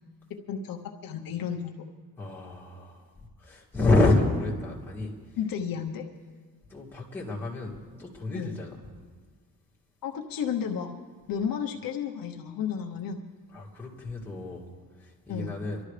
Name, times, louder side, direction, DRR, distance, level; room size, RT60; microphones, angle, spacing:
voice 1, 0.3-1.8 3.8-3.9 5.4-6.0 8.3-8.6 10.0-11.0 11.3-13.2 15.3-15.6, left 7 dB, 65° left, 2 dB, 1.0 m, -32 dB
voice 2, 2.2-3.1 3.4-5.1 6.7-8.8 13.5-14.7 15.3-15.8, left 2 dB, 5° left, -6 dB, 2.5 m, -28 dB
25.0 x 12.5 x 3.3 m, 1.5 s
cardioid pair, 160°, 37 cm